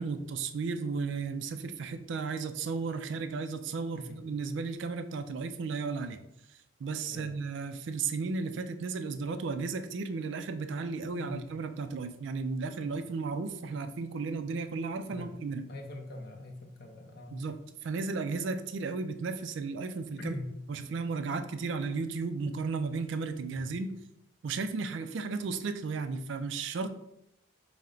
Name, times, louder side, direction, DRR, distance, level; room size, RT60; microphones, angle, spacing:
voice 1, 0.0-6.2 6.8-15.7 17.3-20.4 20.7-23.9 24.4-26.9, right 4 dB, 60° right, 9 dB, 0.3 m, -34 dB
voice 2, 3.9-4.2 7.1-7.3 11.2-11.5 12.8-12.9 15.0-15.3 15.7-17.6 20.2-20.5 23.6-23.8, left 2 dB, 50° left, 3 dB, 0.6 m, -43 dB
4.3 x 2.1 x 3.7 m, 0.81 s
head